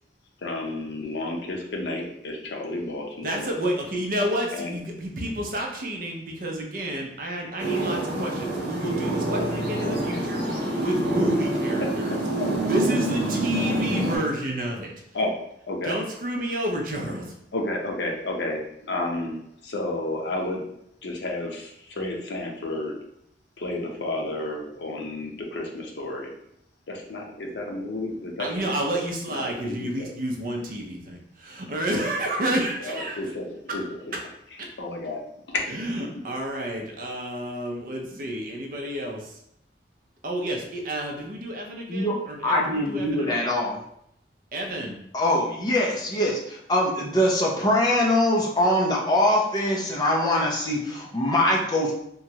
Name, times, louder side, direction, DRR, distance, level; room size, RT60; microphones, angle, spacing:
voice 1, 0.4-3.5 4.5-4.8 12.4-12.5 15.1-15.3 15.7-16.0 17.5-20.6 21.0-22.9 23.6-26.3 26.9-28.8 29.3-30.1 32.5-34.2 34.8-35.2 35.5-35.6, left 2 dB, 80° left, 1 dB, 0.6 m, -31 dB
voice 2, 3.2-12.2 12.6-14.9 15.8-17.3 28.4-33.2 34.6-34.7 35.7-39.4 40.2-43.5 44.5-45.0, right 1 dB, 50° right, 0 dB, 0.6 m, -30 dB
sound 1, 7.6-14.2, right 2 dB, 75° right, 1.1 m, -26 dB
voice 3, 41.9-43.8 45.1-51.9, left 1 dB, 25° left, -2 dB, 0.5 m, -23 dB
3.0 x 2.3 x 2.8 m, 0.75 s
head